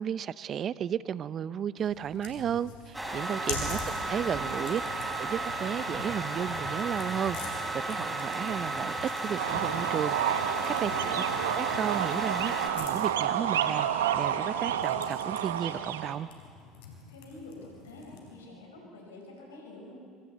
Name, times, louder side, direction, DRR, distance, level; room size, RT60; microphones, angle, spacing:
voice 1, 0.0-3.8 4.1-4.8 5.2-8.9 9.2-10.9 11.5-13.9 14.1-16.3, right 9 dB, 45° right, 18 dB, 0.6 m, -33 dB
sound 1, 1.8-18.4, left 5 dB, 75° left, 4.2 m, -45 dB
sound 2, 2.9-12.7, right 2 dB, 5° right, 3.6 m, -34 dB
voice 2, 3.2-4.6 10.6-11.2 17.1-20.0, left 1 dB, 90° left, -1 dB, 4.9 m, -48 dB
sound 3, 9.4-16.1, right 10 dB, 85° right, 0.9 m, -30 dB
25.0 x 24.5 x 4.2 m, 2.4 s
hypercardioid pair, 75°, 0 cm